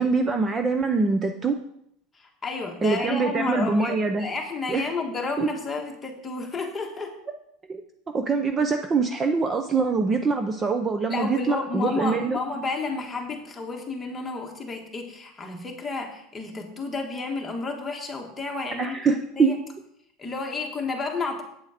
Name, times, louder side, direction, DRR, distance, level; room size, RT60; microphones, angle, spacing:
voice 1, 0.0-1.6 2.8-4.3 4.7-5.0 5.4-5.5 7.7-7.8 8.1-12.4 18.8-19.5, right 4 dB, 20° right, 6 dB, 0.6 m, -24 dB
voice 2, 2.1-7.2 11.1-19.0 19.4-19.6 20.2-21.4, left 3 dB, 15° left, 1 dB, 1.6 m, -31 dB
8.5 x 7.4 x 5.0 m, 0.73 s
supercardioid pair, 155°, 0 cm